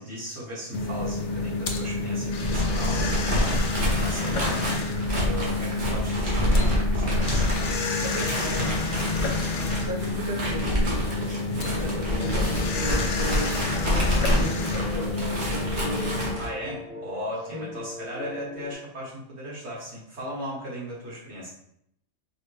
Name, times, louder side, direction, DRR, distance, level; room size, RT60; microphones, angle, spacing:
voice 1, 0.0-4.8 5.2-6.5 6.9-7.5 16.4-21.5, equal, 60° right, -6 dB, 1.6 m, -37 dB
sound 1, 0.7-16.3, left 3 dB, 75° left, 0.9 m, -29 dB
sound 2, 2.3-16.5, equal, 45° right, 1.0 m, -27 dB
voice 2, 8.0-9.1 9.4-11.1 11.7-13.9 14.3-16.4 17.5-17.7, equal, 30° right, -1 dB, 0.4 m, -36 dB
sound 3, 11.8-14.4 14.7-18.7, left 2 dB, 40° left, 1.2 m, -40 dB
4.9 x 2.1 x 3.1 m, 0.72 s
omnidirectional pair, 1.3 m